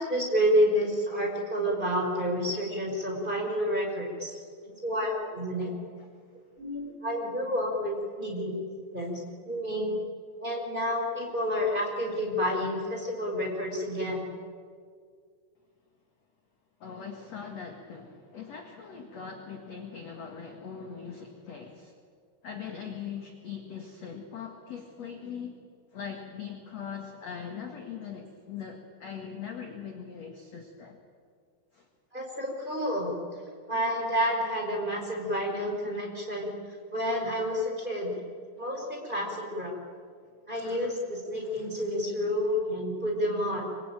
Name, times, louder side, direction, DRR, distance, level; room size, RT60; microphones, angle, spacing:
voice 1, 0.0-4.3 4.8-5.7 6.6-8.6 8.9-9.2 9.4-10.0 10.4-14.3 32.1-33.1 33.7-36.5 36.9-38.2 38.6-39.7 40.5-43.6, equal, 10° right, 0 dB, 5.1 m, -29 dB
voice 2, 16.8-21.9 22.4-25.5 25.9-31.0 31.7-31.9 40.5-40.9 41.4-41.9, left 7 dB, 50° left, 3 dB, 2.0 m, -41 dB
26.5 x 23.5 x 9.1 m, 2.1 s
omnidirectional pair, 5.8 m